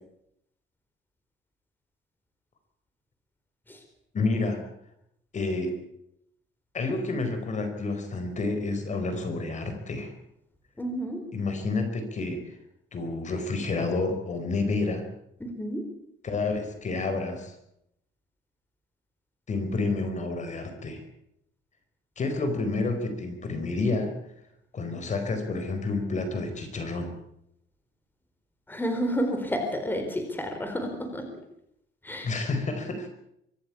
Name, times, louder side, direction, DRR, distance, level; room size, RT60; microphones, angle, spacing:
voice 1, 4.1-4.6 5.3-5.8 6.7-10.1 11.3-12.5 12.9-15.1 16.2-17.5 19.5-21.0 22.2-24.1 24.7-27.1 32.2-33.1, left 3 dB, 40° left, 7 dB, 4.5 m, -29 dB
voice 2, 10.8-11.2 15.4-15.8 28.7-31.2 32.0-32.3, equal, 10° left, 5 dB, 4.1 m, -30 dB
25.0 x 14.5 x 8.5 m, 0.77 s
cardioid pair, 140°, 19 cm